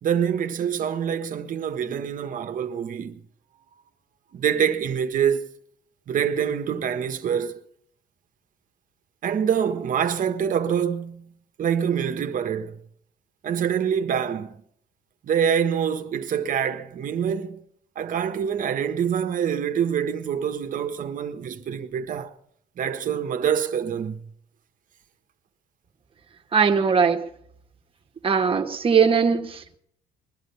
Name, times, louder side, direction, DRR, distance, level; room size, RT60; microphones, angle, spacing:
voice 1, 0.0-3.2 4.3-5.5 6.1-7.6 9.2-11.3 11.6-12.8 13.4-14.6 15.2-17.6 17.9-22.3 22.8-24.2, right 8 dB, 50° right, 1.5 m, -25 dB
voice 2, 26.5-27.3 28.2-29.7, right 6 dB, 30° right, 1.8 m, -20 dB
21.0 x 11.5 x 5.7 m
cardioid pair, 110°, 17 cm